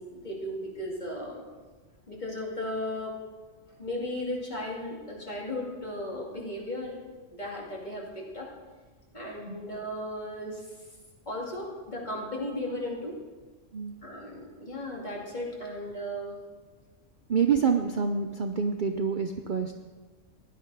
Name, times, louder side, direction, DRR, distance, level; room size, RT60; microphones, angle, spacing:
voice 1, 0.0-1.4 2.1-3.1 3.8-7.0 7.3-8.5 9.1-10.7 11.3-13.2 14.0-16.4, left 1 dB, 35° left, -3 dB, 2.6 m, -35 dB
voice 2, 17.3-19.7, right 6 dB, 50° right, 5 dB, 0.7 m, -27 dB
16.0 x 11.0 x 4.8 m, 1.3 s
omnidirectional pair, 1.3 m